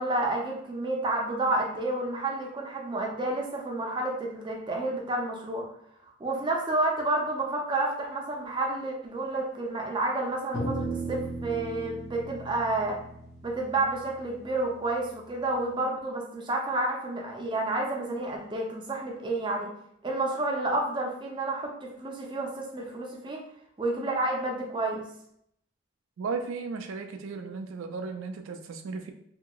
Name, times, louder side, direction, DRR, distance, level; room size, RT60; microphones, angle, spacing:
voice 1, 0.0-5.6 6.2-13.0 13.4-19.7 20.0-23.4 23.8-25.0, right 2 dB, 25° right, 0 dB, 0.5 m, -30 dB
sound 1, 10.5-15.1, right 2 dB, 55° left, 0.5 m, -36 dB
voice 2, 26.2-29.1, right 4 dB, 80° right, 5 dB, 0.4 m, -35 dB
2.8 x 2.8 x 2.3 m, 0.72 s
head